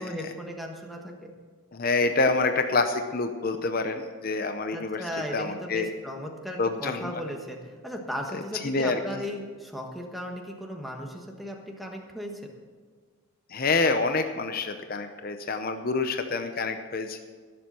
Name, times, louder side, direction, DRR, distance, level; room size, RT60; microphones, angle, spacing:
voice 1, 0.0-1.3 4.7-12.3, equal, ahead, 1 dB, 1.3 m, -36 dB
voice 2, 1.7-5.0 5.3-5.9 6.6-7.2 8.3-9.0 13.5-17.2, left 3 dB, 40° left, 7 dB, 0.7 m, -27 dB
15.5 x 7.6 x 6.9 m, 1.5 s
head